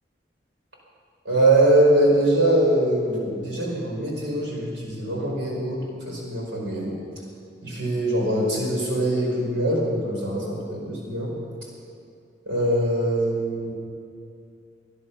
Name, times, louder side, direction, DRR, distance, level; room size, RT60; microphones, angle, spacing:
voice 1, 1.2-7.0 7.6-11.3 12.4-13.7, right 1 dB, 85° right, -2 dB, 4.8 m, -22 dB
21.0 x 11.0 x 5.7 m, 2.5 s
head